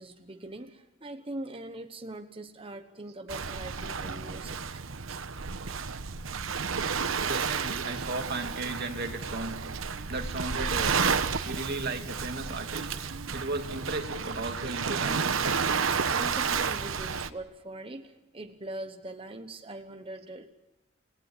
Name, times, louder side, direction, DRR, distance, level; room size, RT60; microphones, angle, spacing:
voice 1, 0.0-4.6 15.9-20.5, right 2 dB, 30° right, 6 dB, 1.1 m, -42 dB
Waves surf, 3.3-17.3, right 5 dB, 85° right, 1.1 m, -31 dB
voice 2, 7.1-9.6 10.1-11.0 11.4-12.9 13.3-15.6, right 2 dB, 55° right, 4 dB, 2.6 m, -35 dB
29.0 x 18.0 x 7.4 m, 1.0 s
head